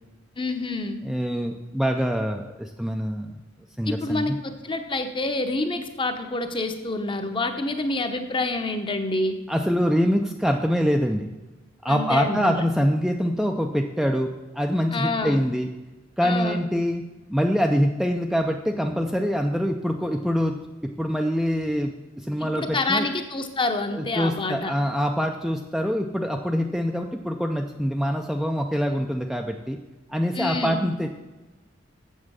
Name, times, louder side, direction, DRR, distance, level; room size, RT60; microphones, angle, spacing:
voice 1, 0.4-1.0 3.9-9.4 11.9-12.6 14.9-15.4 16.2-16.6 22.4-24.7 30.3-30.8, left 2 dB, 25° left, 7 dB, 0.8 m, -27 dB
voice 2, 1.0-3.4 3.8-4.4 9.5-11.3 11.8-15.7 16.2-23.1 23.9-29.8 30.1-31.1, equal, ahead, 3 dB, 0.4 m, -25 dB
7.4 x 7.3 x 6.2 m, 1.2 s
head